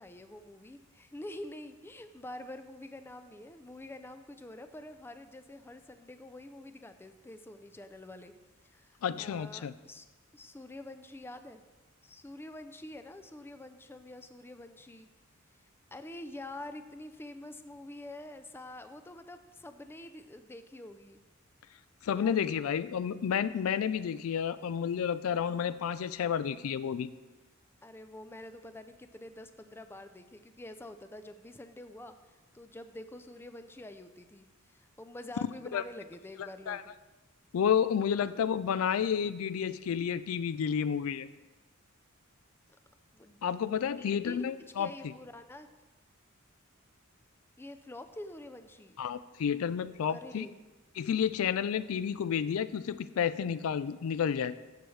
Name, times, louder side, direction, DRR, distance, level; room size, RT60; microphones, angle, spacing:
voice 1, 0.0-8.3 8.6-10.1 10.3-11.6 12.0-15.1 15.9-21.2 22.1-22.4 27.8-36.9 43.1-43.4 44.0-44.5 44.8-45.7 47.6-49.0 50.1-50.6, left 1 dB, 10° left, 9 dB, 0.4 m, -47 dB
voice 2, 9.0-9.7 22.0-27.1 35.7-35.8 36.7-36.8 37.5-41.3 43.4-45.1 49.0-50.5 51.0-54.6, left 8 dB, 75° left, 15 dB, 0.4 m, -31 dB
15.0 x 6.2 x 3.2 m, 1.2 s
head